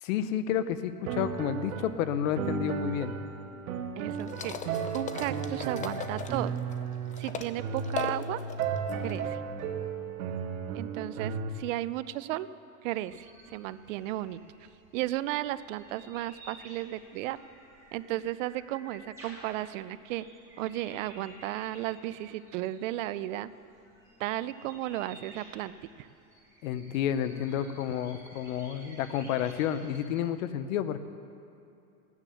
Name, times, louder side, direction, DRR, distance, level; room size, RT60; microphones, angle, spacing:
voice 1, 0.0-3.2 26.6-31.0, left 10 dB, 75° left, 12 dB, 0.9 m, -30 dB
sound 1, 1.1-11.5, right 6 dB, 85° right, 1.3 m, -34 dB
voice 2, 4.0-4.6 4.9-6.6 7.2-8.4 9.0-9.4 10.7-12.5 12.8-14.4 14.9-17.4 17.9-20.3 20.6-23.5 24.2-26.1, right 15 dB, 65° right, 15 dB, 0.6 m, -34 dB
sound 2, 4.1-7.5 7.8-9.2, left 6 dB, 20° left, 0.5 m, -39 dB
sound 3, 13.1-30.3, right 1 dB, 5° right, 4.1 m, -54 dB
15.5 x 9.7 x 7.0 m, 2.6 s
supercardioid pair, 140°, 41 cm